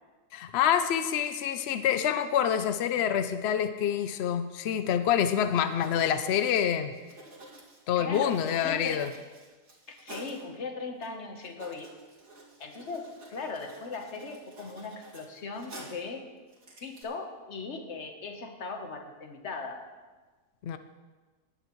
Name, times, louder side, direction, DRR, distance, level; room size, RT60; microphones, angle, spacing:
voice 1, 0.3-6.9 7.9-9.1 20.6-20.8, left 9 dB, 75° left, 9 dB, 0.6 m, -27 dB
Writing, 5.7-10.4 11.0-11.1 11.4-16.1 16.5-17.0, right 1 dB, 55° right, 2.7 m, -50 dB
voice 2, 8.0-9.1 9.9-11.9 12.6-16.3 16.8-19.9, left 4 dB, 45° left, 5 dB, 1.3 m, -38 dB
18.0 x 11.0 x 3.1 m, 1.3 s
omnidirectional pair, 1.7 m